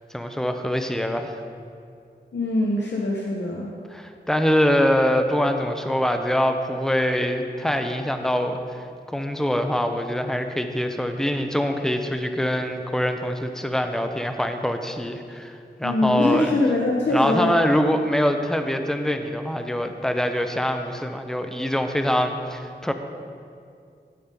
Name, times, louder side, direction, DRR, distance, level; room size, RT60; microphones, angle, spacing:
voice 1, 0.1-1.4 3.9-16.5 17.1-22.9, equal, 5° left, 6 dB, 0.7 m, -24 dB
voice 2, 2.3-3.7 15.8-17.5, left 2 dB, 90° left, -2 dB, 0.9 m, -23 dB
14.0 x 5.3 x 5.3 m, 2.4 s
wide cardioid pair, 65°, 18 cm